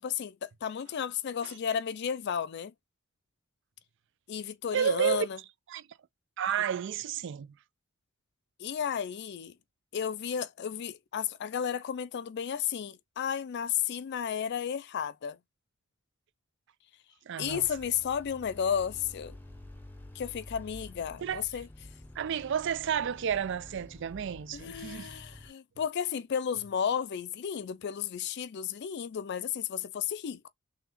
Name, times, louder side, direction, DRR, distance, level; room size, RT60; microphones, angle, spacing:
voice 1, 0.0-2.7 4.3-5.4 8.6-9.6 9.9-15.4 17.4-19.4 20.1-21.7 24.5-30.5, left 8 dB, 55° left, 0.4 m, -33 dB
voice 2, 4.7-5.3 5.7-5.8 6.4-7.5 17.3-17.7 21.2-21.4 22.2-25.1, right 8 dB, 60° right, 0.4 m, -31 dB
sound 1, 17.4-25.5, left 1 dB, 10° left, 0.7 m, -49 dB
3.5 x 3.4 x 3.0 m
head